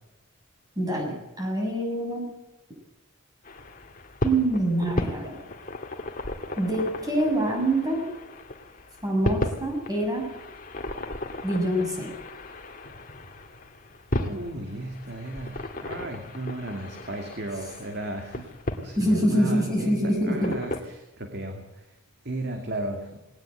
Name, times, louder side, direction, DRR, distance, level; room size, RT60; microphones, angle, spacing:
voice 1, 0.8-2.3 4.2-5.4 6.6-8.1 9.0-10.3 11.4-12.1 19.0-20.5, right 1 dB, 15° right, 1 dB, 7.3 m, -25 dB
sound 1, 3.4-20.8, left 1 dB, 40° left, 1.9 m, -35 dB
voice 2, 14.2-22.0 22.2-23.2, right 1 dB, 50° right, 4 dB, 2.4 m, -35 dB
19.5 x 18.5 x 7.9 m, 1.0 s
head